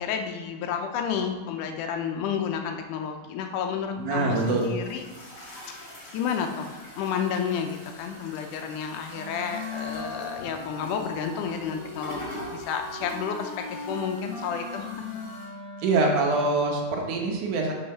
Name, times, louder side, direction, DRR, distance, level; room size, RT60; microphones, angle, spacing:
voice 1, 0.0-5.0 6.1-15.1, left 7 dB, 85° left, 5 dB, 2.2 m, -31 dB
sound 1, 3.7-15.5, left 1 dB, 45° left, 2.8 m, -45 dB
voice 2, 4.0-4.7 15.8-17.7, right 3 dB, 80° right, 0 dB, 2.6 m, -24 dB
Wind instrument woodwind instrument, 9.1-16.2, left 2 dB, 65° left, 0.8 m, -39 dB
5.7 x 5.6 x 5.5 m, 1.4 s
omnidirectional pair, 3.6 m